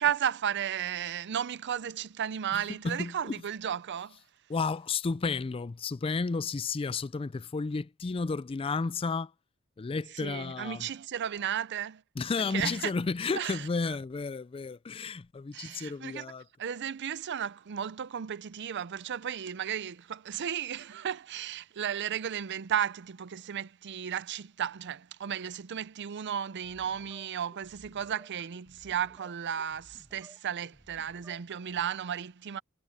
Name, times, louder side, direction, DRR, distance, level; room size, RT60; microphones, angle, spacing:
voice 1, 0.0-4.2 10.1-12.0 12.4-12.9 13.4-14.0 15.5-16.3 16.6-32.6, right 9 dB, 55° right, 0.5 m, -34 dB
voice 2, 2.5-3.4 4.5-9.3 9.8-10.9 12.2-16.4, left 4 dB, 25° left, 0.4 m, -32 dB
sound 1, 26.6-31.8, right 1 dB, 10° right, 1.8 m, -58 dB
head